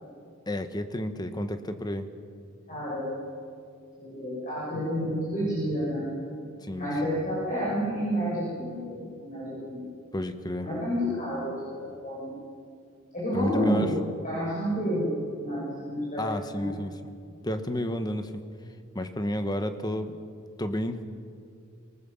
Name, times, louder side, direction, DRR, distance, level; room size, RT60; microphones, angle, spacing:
voice 1, 0.5-2.1 6.6-7.2 10.1-10.7 13.3-13.9 16.2-17.1 17.4-18.3 18.9-20.2 20.6-21.0, left 1 dB, 20° left, 8 dB, 1.2 m, -31 dB
voice 2, 2.7-3.2 4.0-6.1 6.8-9.8 10.6-11.5 12.0-12.4 13.1-13.9 14.2-15.1 15.4-16.2 16.5-16.7, equal, 40° left, -8 dB, 7.4 m, -30 dB
25.5 x 19.5 x 7.2 m, 2.3 s
head